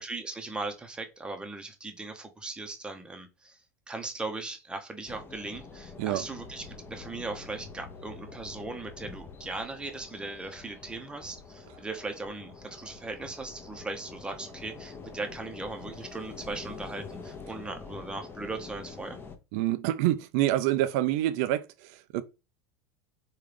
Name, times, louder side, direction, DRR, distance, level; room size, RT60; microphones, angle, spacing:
voice 1, 0.0-3.6 3.9-19.2, right 3 dB, 10° right, 0.7 m, -38 dB
sound 1, 5.1-19.4, left 4 dB, 20° left, 0.7 m, -46 dB
voice 2, 19.5-22.2, right 14 dB, 60° right, 0.4 m, -27 dB
3.7 x 2.3 x 3.3 m
hypercardioid pair, 95°, 9 cm